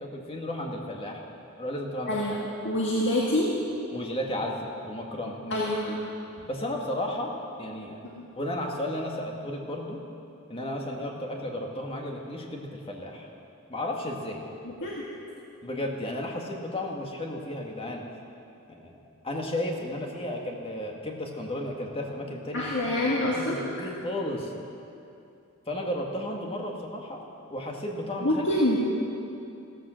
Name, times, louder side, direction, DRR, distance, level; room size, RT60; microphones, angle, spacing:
voice 1, 0.0-1.2 1.6-2.2 3.9-5.6 6.5-7.3 7.6-8.0 8.4-10.0 10.5-13.3 13.7-14.4 15.6-18.1 18.7-19.0 19.2-22.7 23.3-24.5 25.7-27.2 27.5-28.4, left 1 dB, 25° left, 1 dB, 1.8 m, -33 dB
voice 2, 2.6-3.5 5.5-6.0 8.1-8.3 14.6-14.9 22.5-23.6 28.2-28.8, left 1 dB, 60° left, -4 dB, 1.8 m, -26 dB
15.0 x 14.0 x 6.4 m, 2.6 s
head